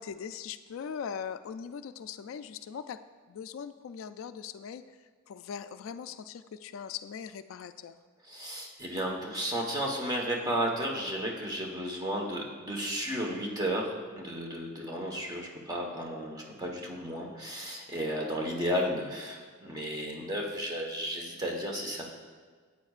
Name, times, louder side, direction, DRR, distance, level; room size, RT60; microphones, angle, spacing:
voice 1, 0.0-3.0 3.3-4.8 5.3-8.0, left 7 dB, 75° left, 11 dB, 0.3 m, -40 dB
voice 2, 8.2-22.2, equal, 20° right, 0 dB, 1.2 m, -33 dB
13.0 x 8.5 x 2.4 m, 1.5 s
head